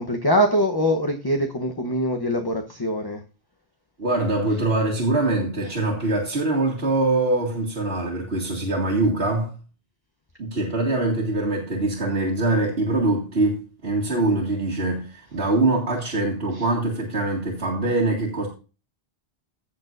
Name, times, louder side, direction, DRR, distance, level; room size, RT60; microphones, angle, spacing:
voice 1, 0.0-3.2 5.6-5.7 16.5-16.7, equal, 25° left, 0.9 m, -23 dB
voice 2, 4.0-9.5 10.4-18.5, right 2 dB, 75° right, 2.4 m, -23 dB
16.0 x 6.7 x 2.6 m
omnidirectional pair, 1.1 m